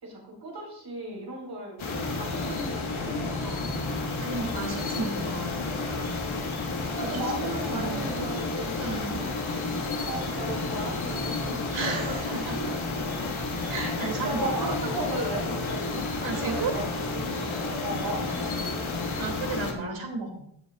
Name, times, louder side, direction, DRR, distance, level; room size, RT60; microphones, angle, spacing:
voice 1, 0.0-1.8 2.1-3.7 7.0-8.7 9.1-9.4 10.0-12.2 13.1-13.2 13.8-18.8, right 2 dB, 60° right, -2 dB, 4.5 m, -36 dB
sound 1, 1.8-19.7, left 3 dB, 90° left, 1.8 m, -31 dB
voice 2, 4.2-5.7 7.7-8.1 8.8-9.2 11.7-12.7 13.7-14.6 16.2-16.7 19.2-20.3, right 4 dB, 80° right, 2 dB, 2.6 m, -33 dB
16.5 x 7.5 x 2.4 m, 0.71 s
wide cardioid pair, 180°, 46 cm